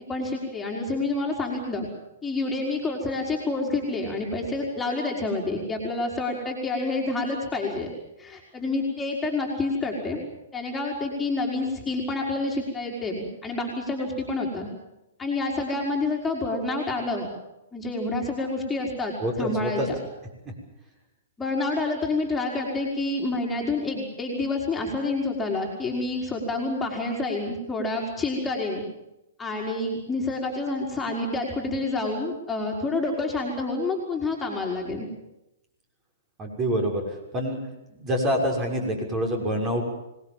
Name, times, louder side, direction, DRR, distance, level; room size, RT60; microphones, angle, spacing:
voice 1, 0.1-1.9 2.2-7.9 8.2-10.2 10.5-14.7 15.2-17.3 17.7-19.9 21.4-28.8 29.4-35.1, left 2 dB, 10° left, -1 dB, 4.8 m, -28 dB
voice 2, 19.2-19.9 36.4-37.6 37.9-39.8, equal, 25° right, 2 dB, 6.6 m, -26 dB
26.0 x 20.0 x 7.5 m, 0.91 s
hypercardioid pair, 120°, 0 cm